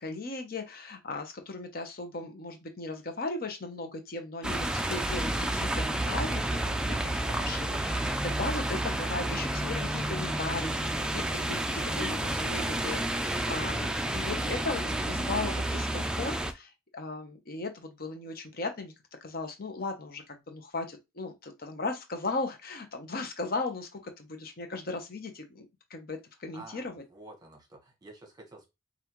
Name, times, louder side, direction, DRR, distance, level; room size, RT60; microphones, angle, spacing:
voice 1, 0.0-18.9 19.2-27.0, left 3 dB, 50° left, 0.9 m, -37 dB
sound 1, 4.4-16.5, right 1 dB, 5° right, 0.3 m, -30 dB
voice 2, 26.5-28.7, right 2 dB, 20° right, 1.1 m, -50 dB
5.4 x 2.5 x 3.0 m
head